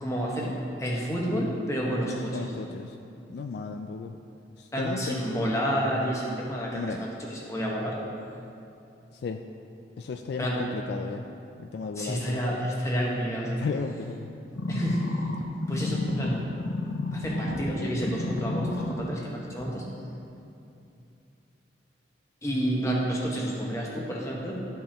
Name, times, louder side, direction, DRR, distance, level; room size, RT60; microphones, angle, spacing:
voice 1, 0.0-0.5 0.8-2.4 4.7-8.0 10.4-10.6 12.0-13.6 14.7-15.0 15.7-16.4 17.1-19.8 22.4-24.6, equal, 15° left, -3 dB, 1.1 m, -29 dB
voice 2, 2.3-3.0 3.3-4.2 4.6-5.5 6.7-7.0 9.1-9.4 10.0-11.3 11.6-12.6 13.6-14.3, left 4 dB, 60° left, 5 dB, 0.3 m, -34 dB
sound 1, 14.5-17.7 18.0-19.0 19.6-19.7, left 2 dB, 85° left, 0.7 m, -31 dB
12.5 x 5.5 x 2.9 m, 2.6 s
head